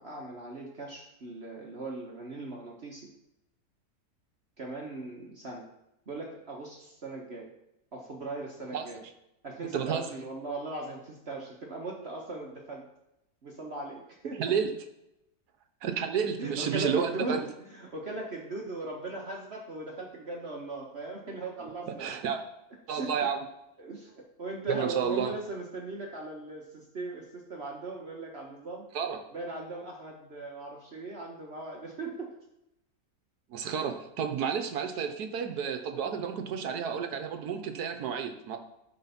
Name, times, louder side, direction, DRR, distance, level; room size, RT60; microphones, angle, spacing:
voice 1, 0.0-3.1 4.6-5.7 6.1-7.5 7.9-9.0 9.4-12.8 13.4-14.4 16.4-22.1 22.9-23.1 23.8-28.9 29.3-32.3, right 2 dB, 45° right, -1 dB, 1.3 m, -39 dB
voice 2, 9.7-10.0 14.4-14.7 15.8-17.4 21.6-22.4 22.9-23.4 24.7-25.3 28.9-29.2 33.5-38.6, right 7 dB, 70° right, 7 dB, 1.4 m, -31 dB
11.5 x 3.9 x 5.7 m, 0.86 s
omnidirectional pair, 1.7 m